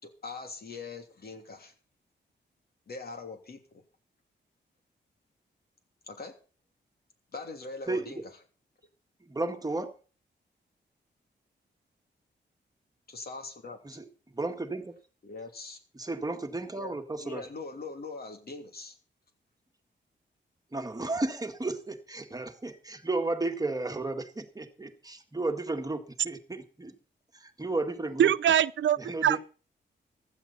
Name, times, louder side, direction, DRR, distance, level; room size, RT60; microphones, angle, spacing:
voice 1, 0.0-1.7 2.9-3.8 6.1-6.3 7.3-8.4 13.1-14.0 15.2-15.8 16.7-19.0, left 3 dB, 55° left, 2.9 m, -42 dB
voice 2, 9.3-9.9 13.8-14.0 14.3-14.9 16.0-17.4 20.7-26.9 27.4-28.3 29.0-29.4, right 2 dB, 20° right, 1.8 m, -33 dB
voice 3, 28.2-29.4, right 10 dB, 80° right, 0.5 m, -23 dB
15.5 x 12.5 x 4.2 m
cardioid pair, 95°, 19 cm